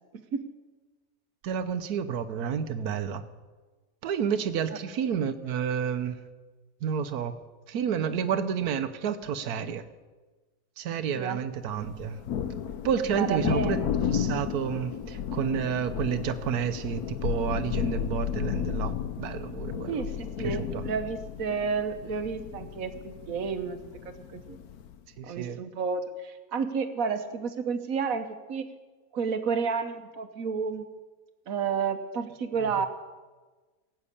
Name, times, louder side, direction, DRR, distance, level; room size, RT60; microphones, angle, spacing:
voice 1, 1.4-3.2 4.0-6.2 6.8-7.3 7.7-9.9 10.8-12.2 12.8-13.8 14.1-20.0 20.4-20.8 25.2-25.6 32.6-32.9, right 7 dB, 85° right, 1.3 m, -30 dB
Thunder, 11.8-25.0, left 8 dB, 80° left, 1.2 m, -33 dB
voice 2, 13.1-13.9 19.9-23.8 24.0-24.6 25.2-28.7 29.1-30.9 31.5-32.9, right 5 dB, 65° right, 1.4 m, -31 dB
17.5 x 6.4 x 8.4 m
omnidirectional pair, 1.6 m